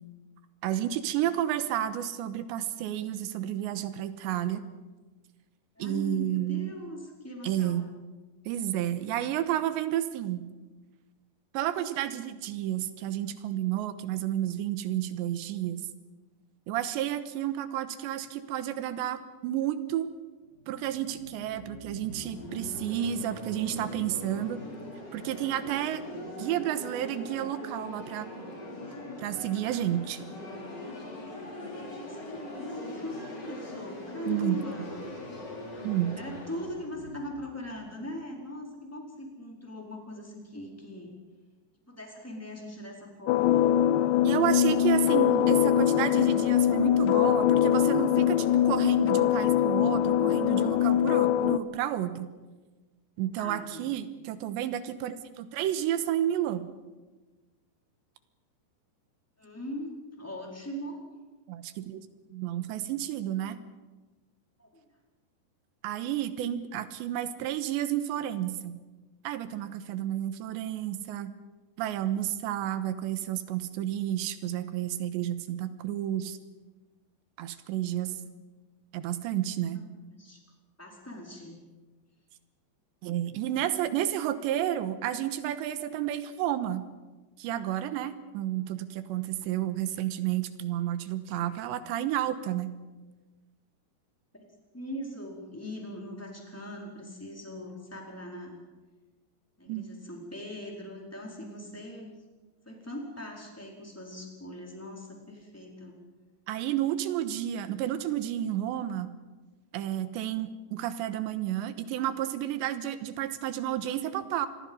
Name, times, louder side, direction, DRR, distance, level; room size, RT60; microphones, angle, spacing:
voice 1, 0.6-4.6 5.8-6.7 7.4-7.9 8.5-10.5 11.5-15.9 16.7-20.1 20.7-24.6 25.1-26.0 26.4-28.3 29.2-30.2 34.3-34.6 35.8-36.2 44.2-52.3 53.2-56.7 61.5-62.0 62.3-63.6 65.8-68.8 69.2-71.3 71.8-76.4 77.4-78.1 78.9-79.8 83.0-86.8 87.4-92.7 99.7-99.9 106.5-109.1 109.7-114.5, right 12 dB, 85° right, 11 dB, 3.4 m, -31 dB
voice 2, 5.8-7.9 32.0-35.0 36.2-41.1 41.9-43.7 44.8-45.3 53.2-53.9 59.4-61.0 64.6-64.8 79.5-79.9 80.2-80.4 80.8-81.6 91.4-91.5 94.3-94.5 94.7-98.6 99.6-102.1 102.6-106.0, left 1 dB, 5° left, -1 dB, 4.1 m, -41 dB
sound 1, 20.5-38.4, left 1 dB, 25° left, 3.9 m, -42 dB
sound 2, 43.3-51.6, left 11 dB, 85° left, 3.1 m, -23 dB
27.0 x 21.0 x 5.5 m, 1.2 s
omnidirectional pair, 5.0 m